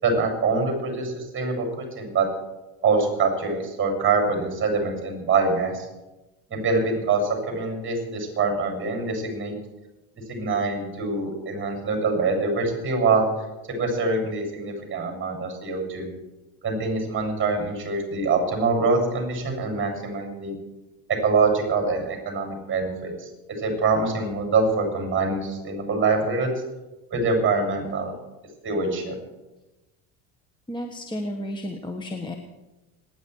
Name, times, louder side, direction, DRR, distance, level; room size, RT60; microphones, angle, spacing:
voice 1, 0.0-2.3 2.8-5.9 6.5-9.5 10.2-13.3 13.8-16.1 16.6-20.6 21.2-23.3 23.6-26.5 27.1-28.1 28.6-29.1, right 4 dB, 30° right, 2 dB, 7.3 m, -24 dB
voice 2, 30.7-32.3, left 1 dB, 10° left, 3 dB, 1.4 m, -32 dB
26.0 x 10.5 x 4.8 m, 1.1 s
supercardioid pair, 105°, 41 cm